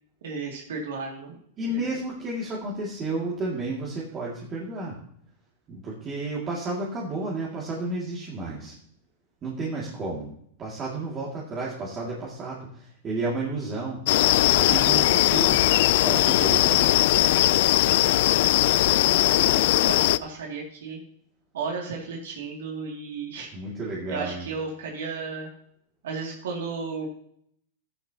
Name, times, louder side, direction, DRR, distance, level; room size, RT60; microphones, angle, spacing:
voice 1, 0.2-2.0 18.8-21.0 21.5-23.5 24.1-25.5 26.0-27.1, right 4 dB, 80° right, -1 dB, 2.5 m, -34 dB
voice 2, 1.6-5.0 5.7-8.7 9.4-10.3 10.6-14.0 14.5-15.6 16.0-17.0 23.5-24.5, right 2 dB, 25° right, -4 dB, 2.3 m, -32 dB
sound 1, 14.1-20.2, left 15 dB, 60° left, 0.4 m, -20 dB
12.0 x 10.5 x 2.9 m, 0.67 s
supercardioid pair, 145°, 0 cm